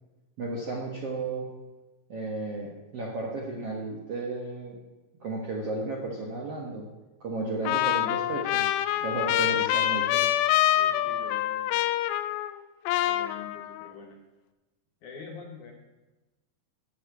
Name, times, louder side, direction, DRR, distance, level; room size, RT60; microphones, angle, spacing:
voice 1, 0.4-1.5 2.1-4.8 5.2-6.9 7.2-8.7 9.0-10.2, right 3 dB, 55° right, -2 dB, 1.7 m, -33 dB
Trumpet, 7.7-12.6 12.9-13.9, left 13 dB, 85° left, 2.1 m, -26 dB
voice 2, 9.0-9.3 10.8-11.8 13.0-14.2 15.0-15.7, left 5 dB, 65° left, 1 dB, 2.1 m, -45 dB
11.5 x 6.7 x 8.0 m, 1.1 s
omnidirectional pair, 4.7 m